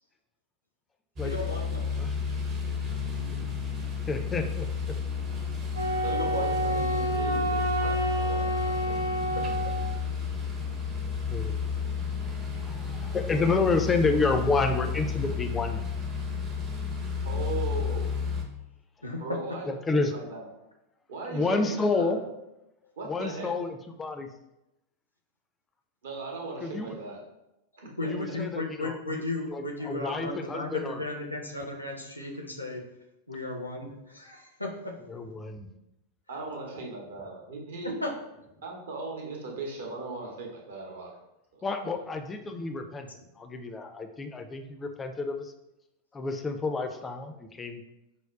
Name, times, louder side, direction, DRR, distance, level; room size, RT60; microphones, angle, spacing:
voice 1, 1.2-2.0 6.1-6.7 9.3-9.6 19.0-19.2 28.0-32.9 33.3-35.0 37.8-38.1, left 2 dB, 85° left, 1 dB, 0.5 m, -35 dB
sound 1, 1.2-18.4, left 6 dB, 30° right, 0.6 m, -31 dB
voice 2, 4.1-4.7 11.3-11.6 12.5-15.8 19.7-20.1 21.3-22.2 23.1-24.3 26.6-27.0 28.1-29.2 29.5-31.0 35.1-35.7 41.6-43.1 43.4-45.5 46.1-47.8, left 3 dB, 15° left, 5 dB, 0.3 m, -29 dB
Wind instrument woodwind instrument, 5.7-10.0, right 2 dB, 85° right, 0.4 m, -29 dB
voice 3, 6.0-9.3 17.2-18.1 19.2-20.5 21.1-22.3 23.0-23.5 26.0-27.2 27.8-28.1 36.3-37.9 38.6-41.2 41.5-42.1, right 3 dB, 65° right, 0 dB, 0.8 m, -38 dB
5.1 x 2.0 x 2.3 m, 0.90 s
figure-of-eight pair, 90°, 0 cm